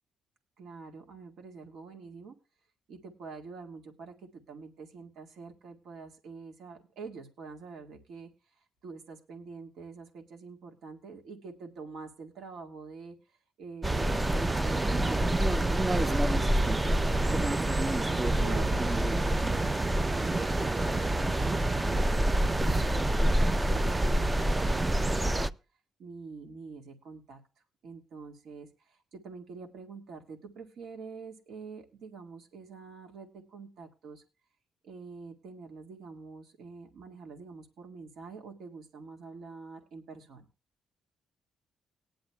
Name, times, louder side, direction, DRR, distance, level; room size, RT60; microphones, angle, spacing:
voice 1, 0.6-2.4 2.9-16.5 16.8-19.4 20.0-25.5 26.0-27.4 27.8-34.2 34.8-40.5, right 4 dB, 75° right, 3 dB, 1.8 m, -46 dB
sound 1, 13.8-25.5, right 1 dB, 15° right, 0.4 m, -27 dB
18.5 x 10.0 x 2.3 m, 0.31 s
cardioid pair, 90°, 0 cm